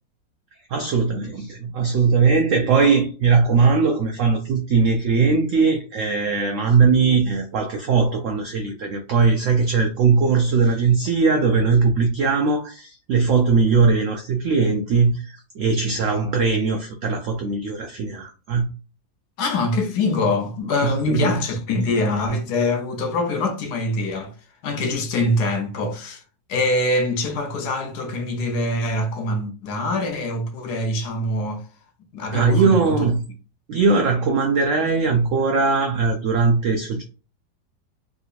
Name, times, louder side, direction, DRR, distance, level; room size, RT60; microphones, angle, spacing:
voice 1, 0.7-18.7 20.8-21.4 32.3-33.2 33.7-37.0, right 4 dB, 85° right, 0.6 m, -20 dB
voice 2, 19.4-24.3 24.6-26.2 26.5-31.6 32.1-33.1, left 2 dB, 70° left, 1.2 m, -24 dB
3.7 x 2.8 x 2.4 m
omnidirectional pair, 1.9 m